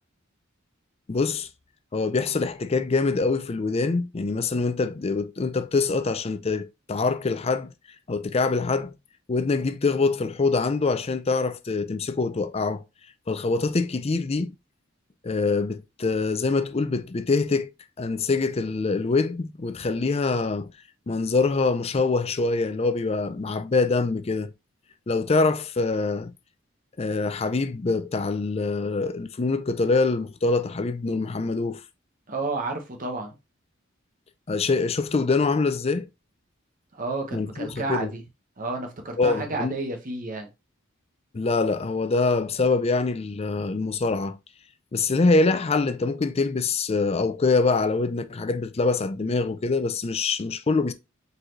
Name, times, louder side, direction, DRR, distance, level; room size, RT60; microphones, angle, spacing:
voice 1, 1.1-1.5 1.9-7.7 8.1-8.9 9.3-12.8 13.3-14.5 15.2-17.7 18.0-20.7 21.1-24.5 25.1-26.3 27.0-31.8 34.5-36.1 37.3-38.1 39.2-39.7 41.3-44.4 44.9-50.9, left 3 dB, 30° left, 0.4 m, -24 dB
voice 2, 32.3-33.4 36.9-38.2 38.6-40.5, right 3 dB, 40° right, 1.1 m, -31 dB
4.8 x 4.0 x 2.6 m
head